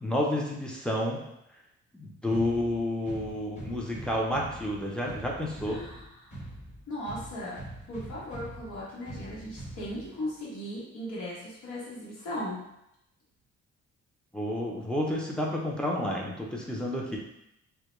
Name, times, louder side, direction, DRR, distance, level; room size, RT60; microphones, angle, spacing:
voice 1, 0.0-1.2 2.0-5.8 14.3-17.2, left 1 dB, 5° left, -2 dB, 0.5 m, -30 dB
sound 1, 2.3-10.3, right 1 dB, 25° left, 1.0 m, -44 dB
voice 2, 5.6-6.4 6.9-12.7, left 1 dB, 75° left, -7 dB, 1.0 m, -38 dB
2.2 x 2.1 x 3.0 m, 0.83 s
cardioid pair, 90°, 30 cm